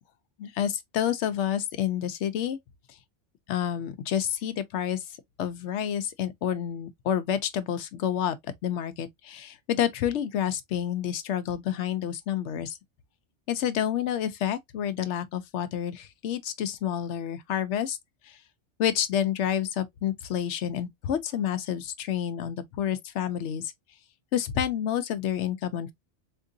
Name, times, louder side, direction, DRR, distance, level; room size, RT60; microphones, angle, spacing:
voice 1, 0.4-2.6 3.5-5.0 5.4-8.4 8.6-12.7 13.5-18.0 18.8-23.6 24.3-25.9, left 10 dB, 80° left, 0.9 m, -29 dB
3.7 x 2.9 x 2.5 m
omnidirectional pair, 1.2 m